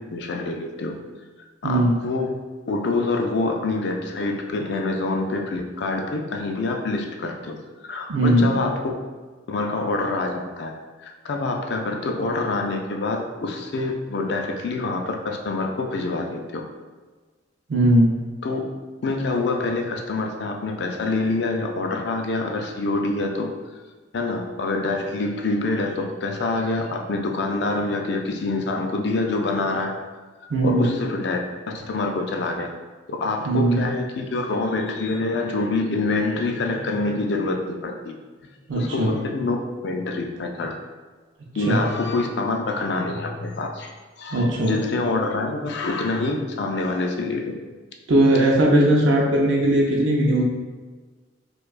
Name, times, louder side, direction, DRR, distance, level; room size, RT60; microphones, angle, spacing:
voice 1, 0.1-1.0 1.6-2.4 2.7-7.6 7.8-9.0 9.5-10.7 11.0-16.6 18.4-18.6 19.0-23.5 24.1-29.9 30.6-31.4 31.7-32.7 33.1-38.1 38.8-39.6 39.8-40.8 41.6-47.5, left 3 dB, 60° left, 3 dB, 0.4 m, -26 dB
voice 2, 1.6-1.9 8.1-8.6 17.7-18.1 30.5-30.8 33.5-33.8 38.7-39.1 41.7-41.8 44.3-44.7 48.1-50.4, right 1 dB, 75° right, -3 dB, 0.5 m, -18 dB
4.4 x 2.3 x 2.4 m, 1.4 s
head